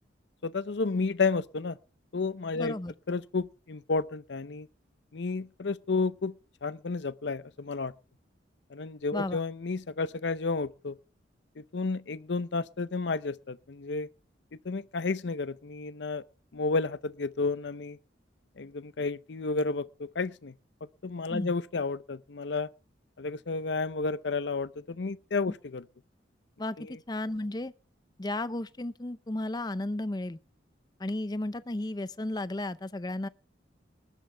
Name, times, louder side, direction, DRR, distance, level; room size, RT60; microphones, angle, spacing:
voice 1, 0.4-1.8 2.1-2.7 3.1-4.7 5.1-6.4 6.6-7.9 8.7-11.0 11.6-14.1 14.6-16.2 16.5-18.0 18.6-20.6 21.0-22.7 23.2-25.8 26.8-27.0, left 4 dB, 65° left, 0.6 m, -31 dB
voice 2, 2.5-2.9 9.1-9.4 21.3-21.5 26.6-27.7 28.2-30.4 31.0-33.3, left 1 dB, 20° left, 0.6 m, -34 dB
20.5 x 12.0 x 3.4 m
head